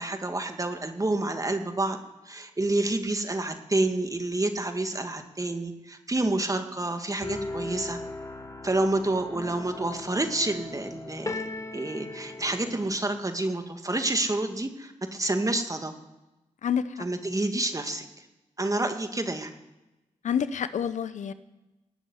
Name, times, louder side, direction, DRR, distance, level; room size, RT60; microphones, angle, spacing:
voice 1, 0.0-2.0 2.3-8.0 8.6-11.4 11.7-15.9 17.0-18.0 18.6-19.5, right 2 dB, 25° right, 6 dB, 2.1 m, -28 dB
sound 1, 7.2-13.0, left 2 dB, 25° left, 1.8 m, -38 dB
voice 2, 20.2-21.3, left 8 dB, 75° left, 13 dB, 0.8 m, -27 dB
18.5 x 7.1 x 9.9 m, 1.0 s
supercardioid pair, 45°, 13 cm